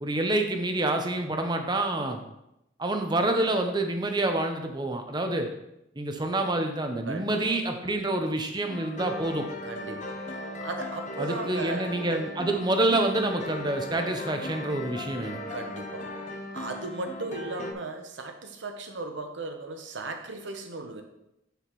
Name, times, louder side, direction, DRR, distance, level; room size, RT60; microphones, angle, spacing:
voice 1, 0.0-2.2 2.8-5.5 6.0-9.5 11.2-15.4, right 2 dB, 25° right, 5 dB, 0.8 m, -27 dB
voice 2, 7.0-7.6 9.6-10.2 10.6-11.9 15.5-16.1 16.5-21.0, right 2 dB, 75° right, 5 dB, 1.0 m, -36 dB
sound 1, 8.7-17.7, left 1 dB, 40° left, 0.8 m, -37 dB
8.0 x 6.7 x 3.1 m, 0.84 s
head